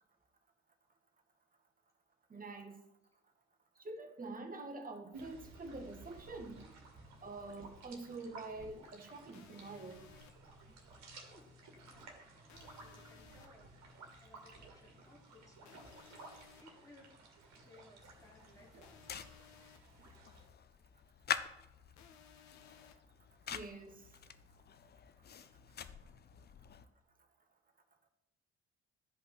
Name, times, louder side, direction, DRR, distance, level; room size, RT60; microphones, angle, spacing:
voice 1, 2.3-2.8 3.8-6.6 7.2-10.0 23.5-24.1, right 3 dB, 25° right, 4 dB, 1.6 m, -46 dB
sound 1, 5.1-20.5, right 3 dB, 55° right, 2.0 m, -56 dB
sound 2, 9.3-10.3 12.5-13.5 15.6-16.6 18.8-19.8 22.0-22.9, left 8 dB, 55° left, 1.0 m, -60 dB
voice 2, 11.9-12.3 12.8-13.7 14.2-17.1 17.6-18.8 25.3-25.8, left 2 dB, 10° left, -1 dB, 3.0 m, -63 dB
sound 3, 18.0-26.9, left 8 dB, 30° left, 0.6 m, -46 dB
12.5 x 5.3 x 4.3 m, 0.83 s
figure-of-eight pair, 50°, 34 cm